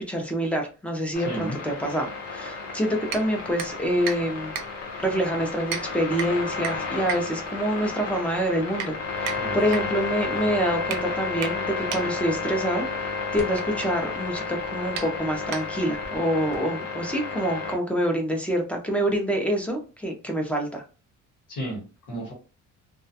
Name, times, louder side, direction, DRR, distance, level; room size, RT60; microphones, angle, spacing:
voice 1, 0.0-4.5 5.0-20.8, equal, 5° left, 2 dB, 0.3 m, -26 dB
sound 1, 1.1-17.8, left 4 dB, 50° left, 0.8 m, -32 dB
voice 2, 1.2-1.6 9.3-9.9 10.1-10.5 21.5-22.3, right 1 dB, 80° left, -3 dB, 1.2 m, -35 dB
sound 2, 3.1-16.1, right 7 dB, 80° right, 0.5 m, -38 dB
2.3 x 2.1 x 2.6 m, 0.34 s
cardioid pair, 160°, 32 cm